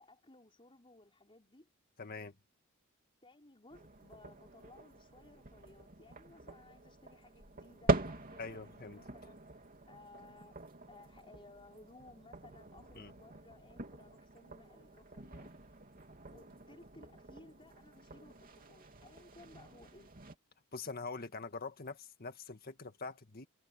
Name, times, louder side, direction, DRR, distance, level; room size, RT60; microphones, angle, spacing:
voice 1, 0.0-1.7 3.2-15.5 16.3-20.1, left 2 dB, 25° left, 4.7 m, -59 dB
voice 2, 2.0-2.3 8.4-9.0 13.0-13.1 20.7-23.5, left 4 dB, 45° left, 1.8 m, -44 dB
sound 1, 3.7-20.3, right 2 dB, 40° right, 3.0 m, -43 dB
head